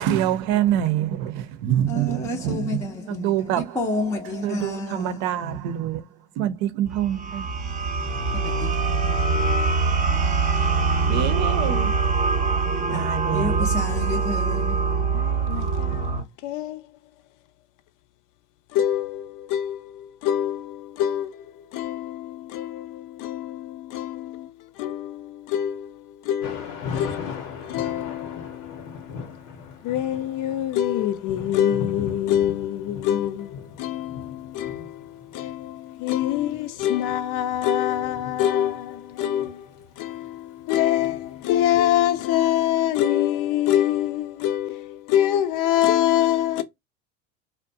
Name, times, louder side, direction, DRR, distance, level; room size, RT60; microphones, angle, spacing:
voice 1, 0.0-2.8 3.1-3.6 4.4-6.0 6.4-7.4 11.1-12.0 12.9-13.7, right 11 dB, 65° right, 0.6 m, -25 dB
voice 2, 1.9-5.6 8.3-9.5 12.6-15.3, left 2 dB, 10° left, 0.5 m, -31 dB
sound 1, 6.9-16.2, right 4 dB, 20° right, 0.8 m, -23 dB
voice 3, 15.1-16.8 18.7-24.5 24.8-29.1 29.8-46.6, left 11 dB, 55° left, 0.5 m, -25 dB
Thunder / Rain, 26.4-42.4, left 5 dB, 80° left, 0.9 m, -39 dB
2.5 x 2.2 x 2.6 m
supercardioid pair, 100°, 38 cm